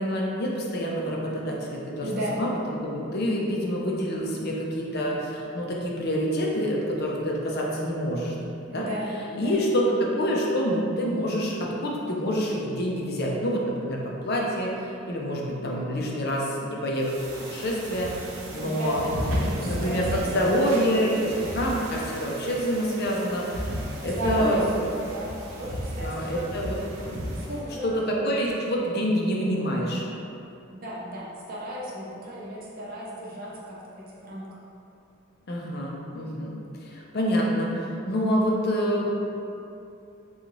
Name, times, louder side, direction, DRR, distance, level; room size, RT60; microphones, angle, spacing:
voice 1, 0.0-8.4 8.7-8.9 9.4-19.1 19.6-24.7 26.0-26.8 27.0-27.2 27.8-30.0 31.8-31.9 35.5-36.6 36.8-39.1, equal, 50° left, -2 dB, 0.5 m, -27 dB
voice 2, 2.0-2.4 8.7-9.6 18.6-20.2 21.1-21.2 24.0-26.9 27.4-28.1 30.7-34.6, equal, 45° right, -6 dB, 0.6 m, -34 dB
sound 1, 17.0-27.7, equal, 85° right, 0.6 m, -34 dB
3.8 x 2.4 x 3.0 m, 2.7 s
head